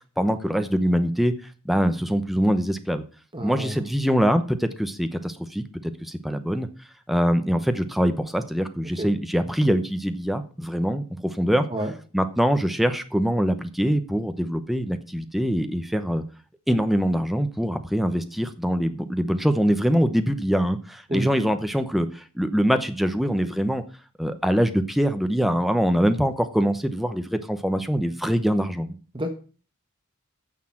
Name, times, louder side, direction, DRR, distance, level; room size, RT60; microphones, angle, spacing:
voice 1, 0.2-1.3 1.6-3.0 3.4-6.7 7.1-11.7 12.1-16.2 16.7-23.8 24.2-28.9, equal, ahead, 8 dB, 0.8 m, -23 dB
voice 2, 3.3-3.8 9.0-9.1 11.7-11.9 21.1-21.3 29.1-29.3, right 1 dB, 20° right, 6 dB, 1.2 m, -28 dB
9.7 x 6.6 x 7.5 m, 0.38 s
head